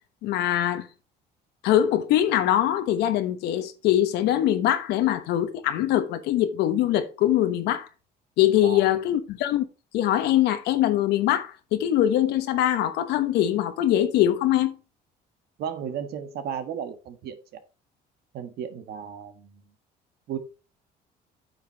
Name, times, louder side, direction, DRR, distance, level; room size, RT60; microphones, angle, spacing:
voice 1, 0.2-0.9 1.6-7.9 8.4-9.6 9.9-14.8, left 12 dB, 85° left, 1.1 m, -23 dB
voice 2, 15.6-17.4 18.3-19.6 20.3-20.4, right 8 dB, 70° right, 1.5 m, -34 dB
9.1 x 5.9 x 4.0 m
cardioid pair, 110°, 17 cm